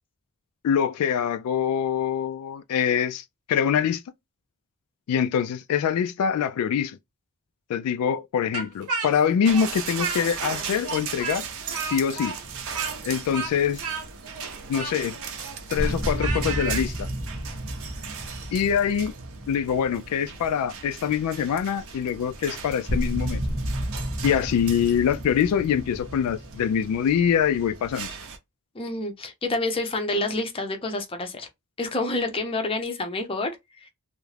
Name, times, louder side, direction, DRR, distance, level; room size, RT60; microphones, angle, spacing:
voice 1, 0.6-4.0 5.1-7.0 7.7-11.5 11.8-12.4 13.0-13.8 14.7-15.2 15.7-17.1 18.5-19.1 19.5-23.4 24.2-28.1, left 8 dB, 80° left, 0.3 m, -24 dB
Speech, 8.5-10.6 10.8-16.9, right 4 dB, 85° right, 0.9 m, -33 dB
sound 1, 9.4-28.4, right 6 dB, 65° right, 0.5 m, -38 dB
sound 2, 12.4-13.8 14.1-14.2 15.2-15.3 15.7-21.1 21.4-21.5 22.0-22.1 22.9-28.0, equal, 25° right, 0.7 m, -32 dB
voice 2, 28.7-31.5 31.8-33.5 33.8-33.9, left 2 dB, 25° left, 0.5 m, -28 dB
2.4 x 2.1 x 3.2 m
head